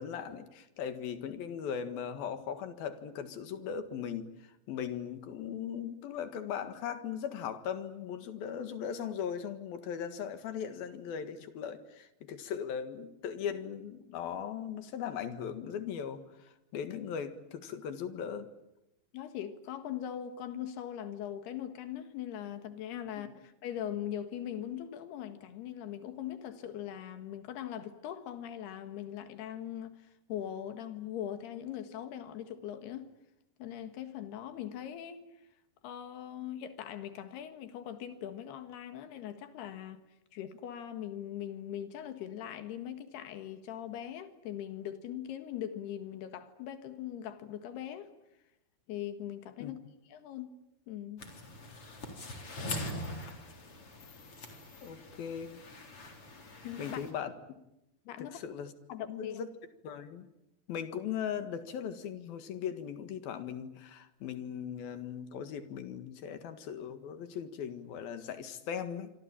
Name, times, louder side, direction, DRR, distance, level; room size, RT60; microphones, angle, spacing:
voice 1, 0.0-4.3 4.7-16.2 16.7-18.5 23.2-23.3 49.6-49.7 54.8-55.6 56.8-57.3 58.2-58.7 59.1-59.5 59.8-60.3 60.7-69.1, left 8 dB, 70° left, 3.5 m, -38 dB
voice 2, 19.1-33.1 33.6-35.2 35.8-40.0 40.3-48.1 48.9-49.8 50.1-50.5 50.9-51.3 56.6-57.0 58.1-58.4 58.9-59.4, left 10 dB, 90° left, 3.7 m, -41 dB
sound 1, 51.2-57.1, left 1 dB, 35° left, 4.4 m, -43 dB
26.0 x 25.5 x 8.9 m
omnidirectional pair, 4.5 m